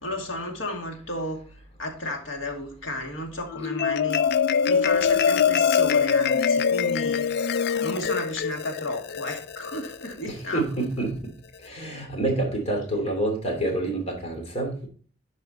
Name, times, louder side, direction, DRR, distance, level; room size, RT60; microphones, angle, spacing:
voice 1, 0.0-1.4 1.8-4.2 4.7-7.3 7.8-10.7, left 1 dB, 90° left, 2.5 m, -33 dB
Marimba xylophone, 3.5-10.1, left 7 dB, 60° left, 0.4 m, -23 dB
voice 2, 10.3-11.3 11.6-14.9, right 2 dB, 35° left, 3.0 m, -28 dB
11.5 x 4.9 x 4.2 m
head